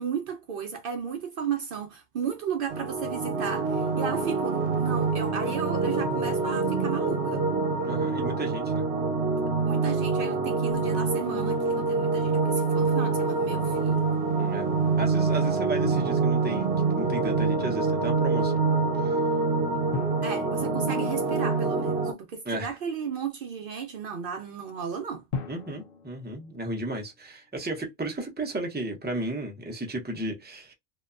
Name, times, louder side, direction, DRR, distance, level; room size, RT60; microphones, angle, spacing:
voice 1, 0.0-7.4 9.7-14.2 20.2-25.2, right 6 dB, 65° right, 0.7 m, -34 dB
sound 1, 2.7-22.1, right 4 dB, 90° right, 1.0 m, -26 dB
voice 2, 7.8-8.8 14.4-14.7 15.0-18.6 18.9-19.2 22.4-22.7 25.5-30.7, right 1 dB, 10° right, 0.7 m, -34 dB
Drum, 19.9-21.8 25.3-27.3, left 5 dB, 65° left, 0.7 m, -40 dB
2.8 x 2.1 x 2.3 m
omnidirectional pair, 1.1 m